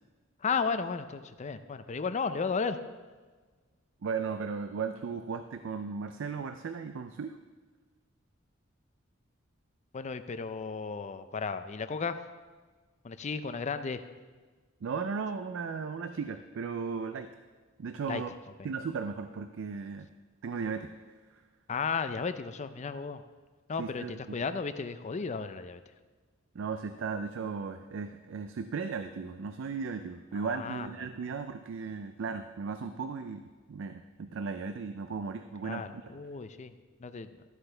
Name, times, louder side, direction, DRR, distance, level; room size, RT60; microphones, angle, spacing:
voice 1, 0.4-2.8 9.9-12.2 13.0-14.0 18.1-18.2 21.7-23.2 23.7-25.8 30.3-31.1 35.6-36.7 37.0-37.3, left 5 dB, 35° left, 11 dB, 0.4 m, -34 dB
voice 2, 4.0-7.4 14.8-17.3 17.8-18.3 18.6-20.1 20.4-20.9 23.8-24.4 26.5-33.4 33.7-36.2, right 5 dB, 65° right, 9 dB, 0.4 m, -36 dB
12.5 x 7.9 x 3.4 m, 1.4 s
head